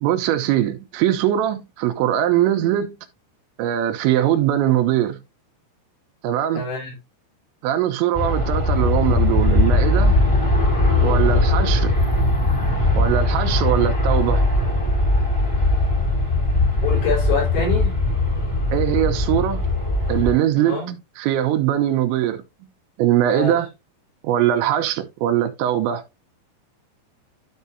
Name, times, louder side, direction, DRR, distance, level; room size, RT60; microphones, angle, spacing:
voice 1, 0.0-3.0 3.6-5.2 6.2-6.6 7.6-10.2 11.0-11.9 13.0-14.4 18.7-19.6 20.1-20.8 21.2-22.4 23.0-23.7 24.2-26.0, right 12 dB, 85° right, 3.2 m, -21 dB
voice 2, 6.5-7.0 16.8-18.0 20.6-20.9 23.3-23.6, left 4 dB, 85° left, 6.5 m, -25 dB
Aircraft, 8.1-20.3, left 2 dB, 15° left, 1.0 m, -19 dB
13.0 x 4.7 x 2.7 m
omnidirectional pair, 5.3 m